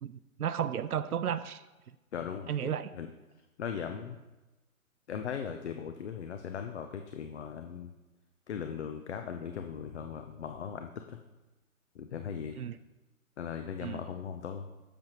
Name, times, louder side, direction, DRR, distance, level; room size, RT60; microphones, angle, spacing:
voice 1, 0.0-1.6 2.5-2.9 12.6-12.8 13.8-14.0, right 9 dB, 85° right, 13 dB, 0.5 m, -33 dB
voice 2, 2.1-3.1 3.6-4.2 5.1-7.9 8.5-11.2 11.9-12.6 13.4-14.7, left 7 dB, 50° left, 6 dB, 0.6 m, -38 dB
10.5 x 6.9 x 3.0 m, 1.1 s
figure-of-eight pair, 140°, 43 cm